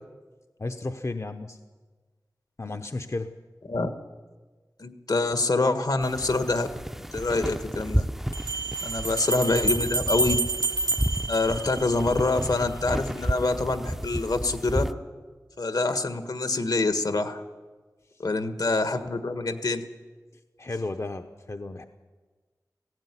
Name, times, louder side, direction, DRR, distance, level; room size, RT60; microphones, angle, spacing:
voice 1, 0.6-1.6 2.6-3.3 20.6-21.9, left 2 dB, 45° left, 7 dB, 0.9 m, -33 dB
voice 2, 4.8-6.7 7.1-8.0 8.8-10.4 11.3-14.8 15.6-17.4 18.2-19.8, left 3 dB, 70° left, 9 dB, 1.6 m, -26 dB
sound 1, 6.0-14.9, equal, 5° right, 0.6 m, -32 dB
sound 2, 6.7-6.8 8.3-12.3, right 2 dB, 80° right, 2.1 m, -29 dB
16.5 x 16.0 x 9.9 m, 1.4 s
wide cardioid pair, 65°, 7 cm